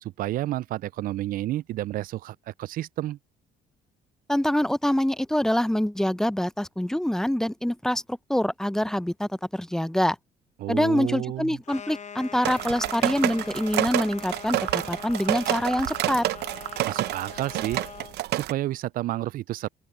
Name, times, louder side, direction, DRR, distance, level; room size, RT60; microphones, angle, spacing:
voice 1, 0.0-3.2 10.6-11.6 16.9-17.8 18.3-19.7, right 14 dB, 55° right, 0.4 m, -30 dB
voice 2, 4.3-10.2 10.7-16.2, left 1 dB, 5° left, 0.6 m, -25 dB
sound 1, 11.6-18.2, left 7 dB, 45° left, 0.8 m, -42 dB
sound 2, 12.4-18.5, right 15 dB, 75° right, 0.8 m, -28 dB
open air
cardioid pair, 110°, 17 cm